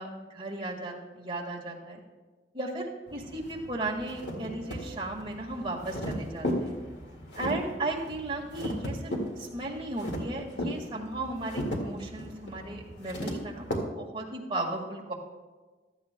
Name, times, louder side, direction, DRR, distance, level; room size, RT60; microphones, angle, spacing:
voice 1, 0.0-2.0 2.5-6.8 7.4-15.1, right 2 dB, 25° right, -1 dB, 1.7 m, -35 dB
sound 1, 3.1-13.8, equal, 70° left, 1.9 m, -36 dB
15.5 x 12.5 x 2.2 m, 1.3 s
head